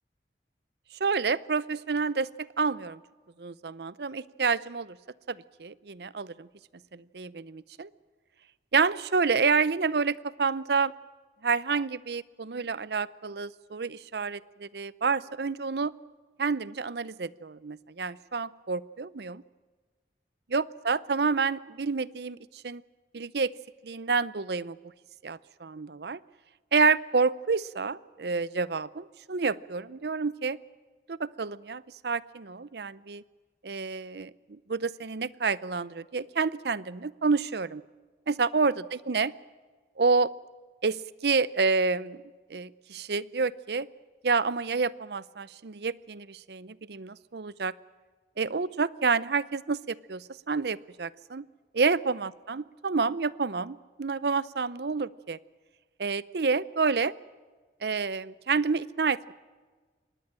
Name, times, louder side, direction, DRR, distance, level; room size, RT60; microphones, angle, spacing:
voice 1, 1.0-3.0 3.4-5.0 5.3-6.5 6.9-7.9 8.7-10.9 11.4-15.9 16.4-19.4 20.5-22.4 22.6-22.8 23.1-23.5 23.8-24.8 25.2-26.2 26.7-30.6 31.1-33.2 33.6-37.8 38.3-39.3 40.0-40.3 40.8-42.2 42.5-43.9 44.2-47.7 48.4-51.4 51.7-55.4 56.0-57.1 57.8-59.3, right 4 dB, 70° right, 19 dB, 0.6 m, -29 dB
24.5 x 19.5 x 7.5 m, 1.4 s
head